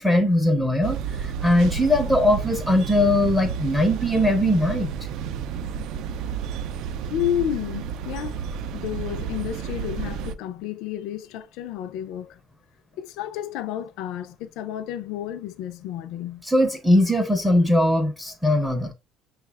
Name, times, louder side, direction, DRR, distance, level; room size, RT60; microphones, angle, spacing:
voice 1, 0.0-4.9 16.4-18.9, left 1 dB, ahead, 0.5 m, -20 dB
sound 1, 0.8-10.3, right 7 dB, 60° right, 0.3 m, -31 dB
voice 2, 7.1-8.4 8.7-12.4 12.9-16.4, left 11 dB, 70° left, 0.4 m, -31 dB
6.0 x 2.3 x 3.3 m
cardioid pair, 155°, 0 cm